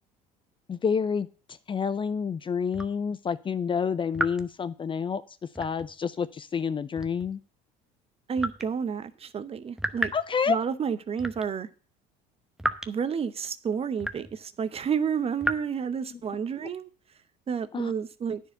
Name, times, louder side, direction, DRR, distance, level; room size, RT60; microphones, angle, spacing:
voice 1, 0.7-1.3 1.7-5.2 5.6-7.4 10.1-10.6 17.7-17.9, left 6 dB, 30° left, 15 dB, 0.5 m, -28 dB
sound 1, 2.7-3.0 4.1-4.5 5.6-5.9 7.0-7.4 8.4-8.7 9.8-10.3 11.2-11.5 12.6-12.9 14.0-14.4 15.4-15.6, right 1 dB, 5° right, 0.8 m, -32 dB
voice 2, 8.3-10.1 10.5-11.7 12.9-16.9 17.5-18.4, right 7 dB, 35° right, 14 dB, 0.8 m, -30 dB
9.8 x 4.6 x 7.8 m, 0.37 s
supercardioid pair, 100°, 18 cm